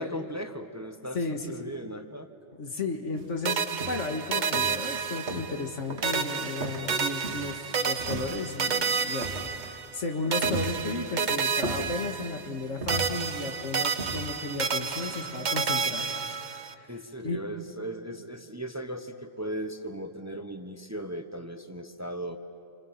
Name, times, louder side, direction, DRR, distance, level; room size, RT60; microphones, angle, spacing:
voice 1, 0.0-2.3 15.0-15.2 16.9-22.4, right 1 dB, 15° right, 7 dB, 0.9 m, -37 dB
voice 2, 2.6-16.1 16.6-16.9 17.2-17.5, left 3 dB, 80° left, 4 dB, 2.2 m, -34 dB
sound 1, 3.2-3.3 3.8-4.2 4.5-5.7 5.9-6.2 6.6-7.7 8.0-8.7 9.2-9.8 10.1-11.2 11.6-12.4 12.8-13.5 14.0-14.3, right 3 dB, 65° right, 1.8 m, -37 dB
sound 2, 3.4-5.7 6.0-10.0 10.3-12.6 12.9-16.7, right 5 dB, 45° right, 0.8 m, -30 dB
29.0 x 26.5 x 7.5 m, 2.5 s
omnidirectional pair, 1.2 m